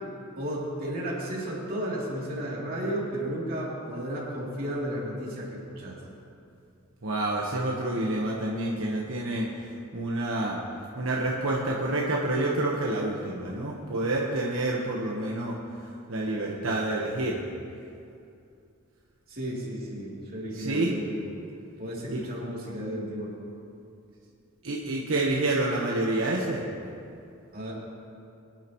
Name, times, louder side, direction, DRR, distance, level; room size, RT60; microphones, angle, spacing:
voice 1, 0.3-6.0 19.3-21.3 21.8-23.3 27.5-27.7, equal, 45° right, -5 dB, 3.1 m, -33 dB
voice 2, 7.0-9.5 9.9-10.6 11.0-15.6 16.1-17.4 20.5-20.9 22.1-22.2 24.6-26.6, right 2 dB, 75° right, -3 dB, 1.3 m, -28 dB
23.5 x 10.5 x 3.1 m, 2.5 s
head